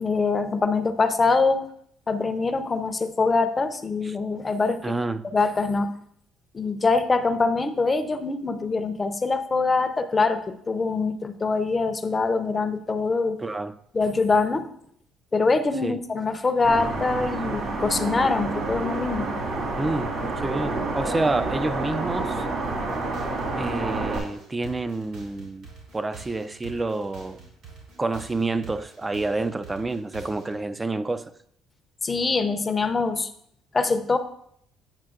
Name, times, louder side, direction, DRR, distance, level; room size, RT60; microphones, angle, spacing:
voice 1, 0.0-1.6 2.1-4.8 5.3-5.9 6.5-13.4 13.9-14.7 15.3-19.3 32.0-33.3 33.7-34.2, left 3 dB, 30° left, 0.6 m, -24 dB
voice 2, 4.8-5.2 13.4-13.7 15.8-16.0 19.8-20.1 20.4-22.5 23.6-27.4 28.0-31.3, right 2 dB, 20° right, 0.4 m, -28 dB
sound 1, 16.6-24.2, right 3 dB, 50° right, 1.9 m, -29 dB
sound 2, 22.6-30.6, right 4 dB, 75° right, 2.8 m, -45 dB
8.9 x 5.6 x 2.5 m
supercardioid pair, 70°, 0 cm